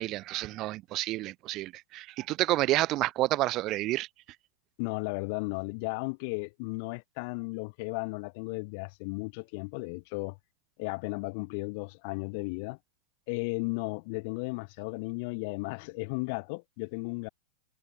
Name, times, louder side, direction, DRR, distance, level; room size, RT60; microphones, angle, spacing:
voice 1, 0.0-4.1, right 17 dB, 40° right, 1.4 m, -29 dB
voice 2, 4.8-10.4 10.8-12.8 13.3-17.3, left 31 dB, 55° left, 0.9 m, -35 dB
hypercardioid pair, 110°, 0 cm